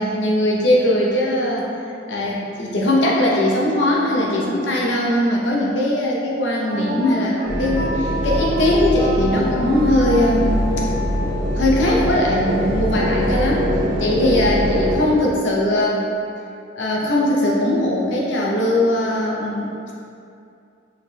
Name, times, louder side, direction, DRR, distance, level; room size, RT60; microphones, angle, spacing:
voice 1, 0.0-1.6 2.1-10.5 11.5-13.7 14.0-16.0 16.8-19.9, left 1 dB, 70° left, -4 dB, 0.7 m, -20 dB
Wind instrument woodwind instrument, 6.6-13.6, equal, 40° right, 0.6 m, -30 dB
sound 1, 7.4-15.0, equal, 15° right, 1.0 m, -23 dB
4.6 x 3.3 x 2.2 m, 2.5 s
head